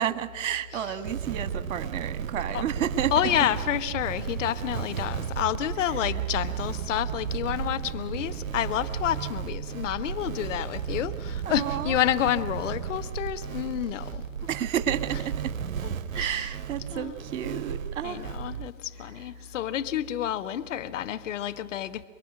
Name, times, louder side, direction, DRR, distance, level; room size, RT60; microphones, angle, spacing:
voice 1, 0.0-3.1 11.5-12.0 14.5-15.5 16.1-18.3, right 10 dB, 60° right, 1.7 m, -31 dB
sound 1, 1.0-18.7, right 8 dB, 80° right, 0.7 m, -34 dB
voice 2, 3.1-14.2 16.2-16.5 16.9-17.1 18.0-18.7 19.0-22.0, left 11 dB, 65° left, 1.3 m, -29 dB
28.0 x 21.5 x 6.5 m
hypercardioid pair, 100°, 40 cm